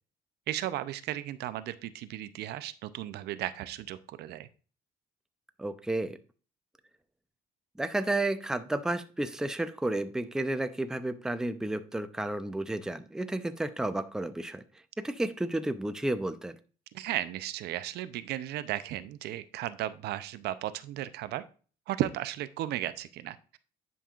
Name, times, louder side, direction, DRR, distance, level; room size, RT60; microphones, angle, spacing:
voice 1, 0.5-4.5 16.9-21.4 21.9-23.6, right 13 dB, 75° right, 13 dB, 0.6 m, -35 dB
voice 2, 5.6-6.2 7.8-14.6 15.0-16.6, right 2 dB, 5° right, 10 dB, 0.5 m, -32 dB
10.0 x 5.4 x 2.4 m, 0.38 s
cardioid pair, 110°, 17 cm